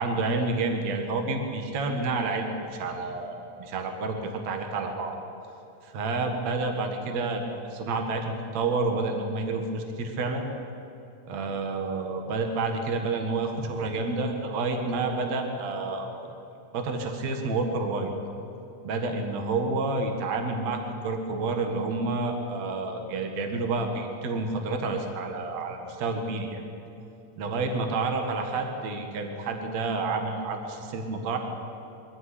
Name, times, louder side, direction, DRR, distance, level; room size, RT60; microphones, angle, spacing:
voice 1, 0.0-5.1 5.8-10.5 11.3-16.3 16.7-18.1 18.8-26.6 27.4-31.4, right 3 dB, 60° right, 4 dB, 2.9 m, -29 dB
23.5 x 14.0 x 9.9 m, 2.9 s
omnidirectional pair, 3.7 m